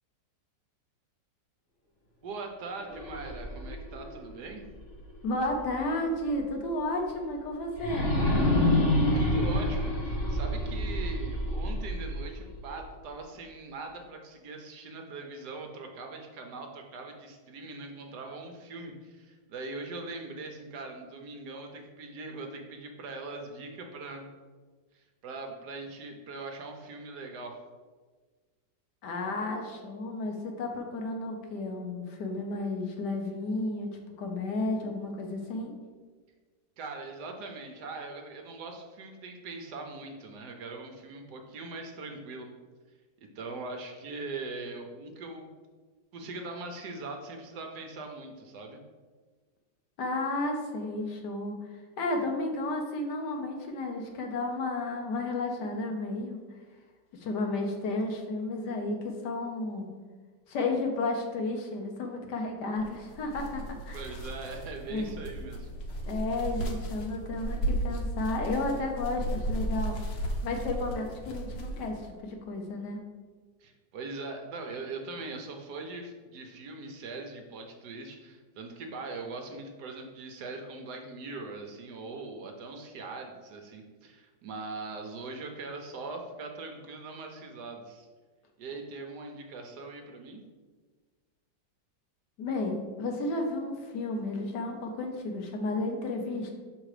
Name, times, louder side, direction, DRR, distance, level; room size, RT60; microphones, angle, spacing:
voice 1, 2.2-4.6 9.1-24.3 24.9-27.6 36.8-42.5 43.3-45.5 46.1-48.8 63.9-65.7 73.6-88.1 88.6-90.4, right 3 dB, 70° right, 3 dB, 1.2 m, -41 dB
sound 1, 2.8-5.8 6.2-6.3 7.7-12.8, left 1 dB, 40° left, 1.3 m, -28 dB
voice 2, 5.2-8.1 29.0-33.9 34.2-35.7 50.0-56.4 57.1-59.9 60.5-64.1 64.9-65.1 66.1-70.0 70.4-73.0 92.4-96.5, left 2 dB, 70° left, 3 dB, 1.4 m, -32 dB
sound 2, 62.8-72.0, right 1 dB, 90° left, 1.6 m, -35 dB
6.0 x 3.8 x 4.8 m, 1.4 s
omnidirectional pair, 2.0 m